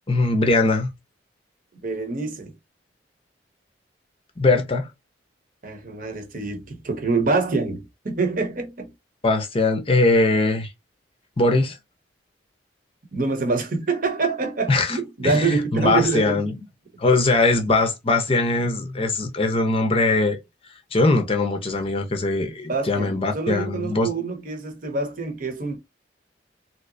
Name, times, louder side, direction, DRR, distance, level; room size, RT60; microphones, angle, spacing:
voice 1, 0.1-0.9 4.4-4.9 9.2-10.7 11.4-11.8 14.7-15.0 15.2-16.6 17.0-20.4 20.9-24.1, left 2 dB, 30° left, 0.6 m, -21 dB
voice 2, 1.8-2.5 5.6-8.9 13.1-16.4 22.7-25.8, right 4 dB, 45° right, 0.9 m, -26 dB
3.2 x 2.9 x 2.6 m
head